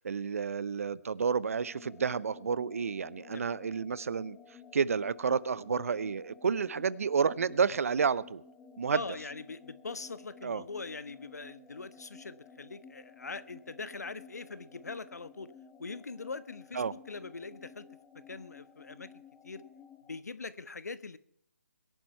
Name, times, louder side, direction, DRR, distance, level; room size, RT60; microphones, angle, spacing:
voice 1, 0.0-4.4 4.7-8.4 8.8-9.0 10.4-10.6 16.7-16.9, right 6 dB, 60° right, 21 dB, 0.8 m, -30 dB
sound 1, 1.5-20.2, left 6 dB, 10° left, 0.8 m, -54 dB
voice 2, 8.9-15.5 15.8-17.9 18.1-19.1 19.4-19.6 20.1-21.2, left 4 dB, 80° left, 15 dB, 1.2 m, -42 dB
22.5 x 11.0 x 4.5 m, 0.68 s
figure-of-eight pair, 155°, 9 cm